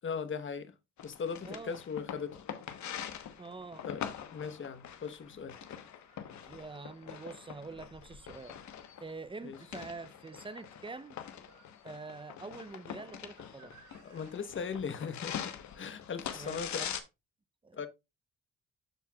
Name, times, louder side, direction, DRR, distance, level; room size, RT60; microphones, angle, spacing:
voice 1, 0.0-0.7 1.0-2.4 3.8-4.0 4.3-5.6 9.4-9.6 14.0-16.9 17.7-17.9, left 6 dB, 40° left, 1.0 m, -38 dB
sound 1, 1.0-17.0, left 9 dB, 70° left, 1.1 m, -44 dB
voice 2, 1.4-1.8 3.4-3.9 6.4-8.6 9.0-11.2 11.8-13.7 16.3-16.9 17.6-17.9, right 3 dB, 15° right, 0.5 m, -45 dB
sound 2, 5.6-14.4, right 6 dB, 85° right, 5.4 m, -65 dB
13.0 x 4.5 x 2.3 m
cardioid pair, 90°, 30 cm